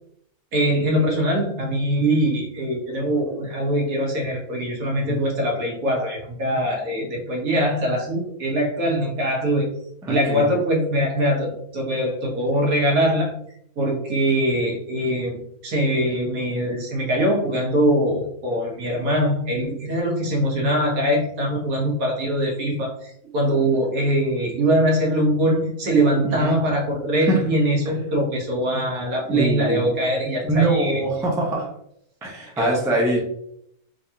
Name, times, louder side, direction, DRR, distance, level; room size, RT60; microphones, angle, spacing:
voice 1, 0.5-9.7 10.1-13.4 13.8-31.0 32.6-32.8, equal, 70° right, -1 dB, 1.4 m, -22 dB
voice 2, 10.0-10.4 26.2-26.5 27.3-27.4 29.3-29.9 30.4-31.7 32.2-33.2, right 2 dB, 5° right, -2 dB, 0.5 m, -23 dB
3.6 x 3.3 x 2.8 m, 0.71 s
omnidirectional pair, 1.6 m